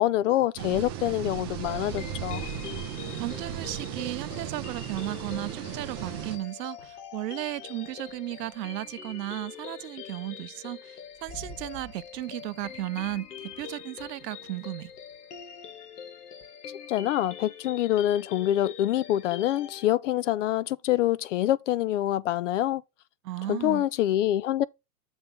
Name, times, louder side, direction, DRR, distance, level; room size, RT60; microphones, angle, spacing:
voice 1, 0.0-2.5 16.9-22.8 23.5-24.6, left 13 dB, 50° left, 0.5 m, -26 dB
sound 1, 0.6-6.4, right 9 dB, 15° right, 0.3 m, -36 dB
sound 2, 1.6-19.9, left 8 dB, 70° left, 1.6 m, -44 dB
voice 2, 3.2-14.9 23.2-23.8, right 16 dB, 80° right, 0.6 m, -35 dB
sound 3, 4.6-9.1 10.4-10.5 10.9-16.5, equal, 20° left, 1.8 m, -53 dB
7.1 x 3.5 x 5.3 m
hypercardioid pair, 140°, 49 cm